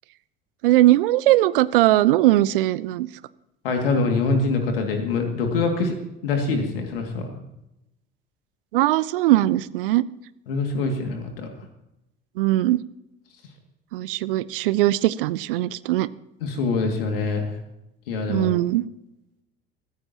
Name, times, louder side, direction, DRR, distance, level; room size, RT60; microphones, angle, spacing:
voice 1, 0.6-3.1 8.7-10.0 12.4-12.8 13.9-16.1 18.3-18.8, right 16 dB, 65° right, 19 dB, 0.6 m, -20 dB
voice 2, 3.6-5.9 6.2-7.4 10.5-11.5 16.4-17.6 18.1-18.5, left 3 dB, 70° left, 4 dB, 2.4 m, -24 dB
24.5 x 14.0 x 3.0 m, 0.87 s
figure-of-eight pair, 65°, 30 cm